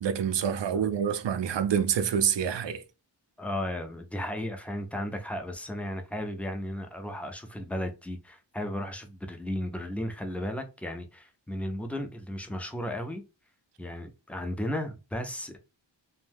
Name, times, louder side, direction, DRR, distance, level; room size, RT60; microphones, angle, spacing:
voice 1, 0.0-2.8, right 8 dB, 70° right, 0.5 m, -27 dB
voice 2, 3.4-13.2 13.8-15.6, left 1 dB, 5° left, 0.4 m, -35 dB
2.6 x 2.2 x 3.4 m
wide cardioid pair, 85°, 45 cm